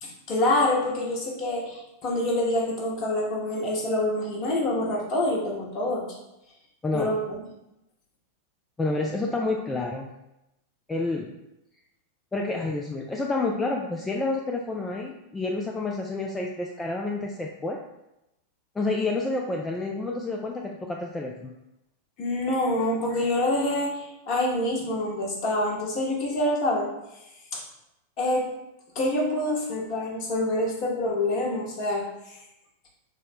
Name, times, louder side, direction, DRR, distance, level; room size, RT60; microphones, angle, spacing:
voice 1, 0.0-6.0 6.9-7.4 22.2-26.9 27.5-27.6 28.2-28.5 28.9-32.4, left 1 dB, 40° left, -2 dB, 1.0 m, -26 dB
voice 2, 6.8-7.1 8.8-10.1 10.9-11.3 12.3-17.8 18.8-21.5, left 2 dB, 10° left, 0 dB, 0.3 m, -29 dB
3.6 x 2.1 x 4.1 m, 0.90 s
figure-of-eight pair, 90°, 0 cm